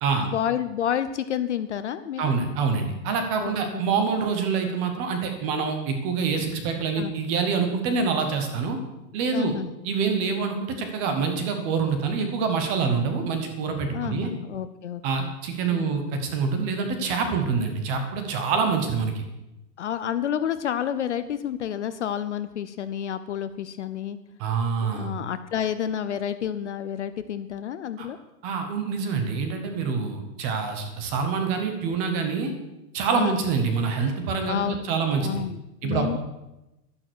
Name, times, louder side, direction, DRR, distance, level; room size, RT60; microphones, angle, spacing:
voice 1, 0.2-2.3 3.4-3.9 7.0-7.1 9.3-9.7 13.9-15.4 15.7-16.0 19.8-24.2 24.9-28.2 33.1-33.4 34.5-36.2, left 9 dB, 45° left, 12 dB, 0.6 m, -30 dB
voice 2, 2.2-8.8 9.1-9.5 9.8-14.3 15.0-19.2 24.4-25.1 28.0-28.1 28.4-32.5 32.9-35.4 35.8-36.1, right 5 dB, 15° right, 5 dB, 0.9 m, -26 dB
12.0 x 11.0 x 6.2 m, 0.96 s
supercardioid pair, 175°, 49 cm